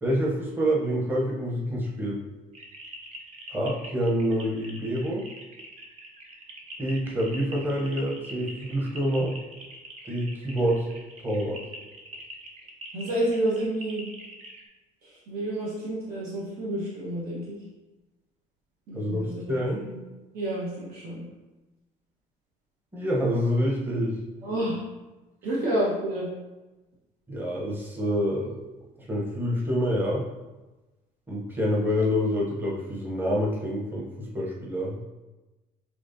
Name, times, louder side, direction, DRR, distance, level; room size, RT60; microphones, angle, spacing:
voice 1, 0.0-2.2 3.5-5.2 6.8-9.4 10.1-10.9 11.2-11.6 18.9-19.2 19.5-19.8 22.9-24.2 27.3-28.5 29.0-30.2 31.3-35.0, equal, 15° right, -3 dB, 0.8 m, -27 dB
sound 1, 2.5-14.6, right 1 dB, 50° right, 0.9 m, -44 dB
voice 2, 12.9-14.1 15.0-17.6 18.9-19.4 19.7-20.0 20.3-21.2 24.4-24.8 25.4-26.3, right 1 dB, 90° right, -6 dB, 1.3 m, -29 dB
6.0 x 3.2 x 2.6 m, 1.1 s
cardioid pair, 135°, 15 cm